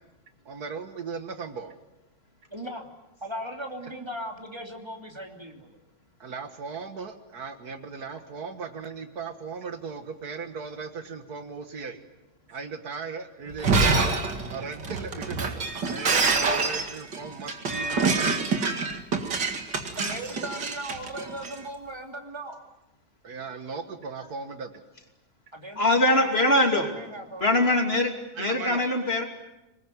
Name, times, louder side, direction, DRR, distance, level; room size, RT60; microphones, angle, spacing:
voice 1, 0.5-1.7 6.2-12.0 12.5-14.2 14.5-15.6 15.9-18.4 23.2-24.7 28.4-28.8, right 5 dB, 60° right, 8 dB, 1.9 m, -37 dB
voice 2, 2.5-2.9 3.2-5.8 19.9-22.6 25.5-27.5 28.6-28.9, right 1 dB, 15° right, 2 dB, 3.2 m, -38 dB
Shatter, 13.5-21.5, right 4 dB, 85° right, 2.8 m, -26 dB
voice 3, 25.8-26.9 27.4-29.2, left 1 dB, 35° left, 3 dB, 3.1 m, -22 dB
25.0 x 21.0 x 9.4 m, 0.95 s
omnidirectional pair, 1.8 m